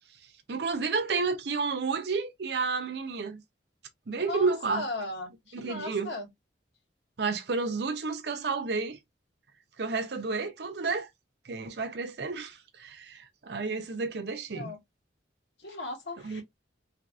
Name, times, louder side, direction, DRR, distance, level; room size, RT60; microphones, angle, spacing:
voice 1, 0.5-3.4 4.1-4.8 5.5-6.1 7.2-9.0 9.8-11.1 11.4-14.7 16.2-16.4, right 4 dB, 60° right, 0.5 m, -31 dB
voice 2, 4.2-6.3 14.5-14.8 15.6-16.4, left 2 dB, 70° left, 1.3 m, -37 dB
3.2 x 2.6 x 2.3 m
head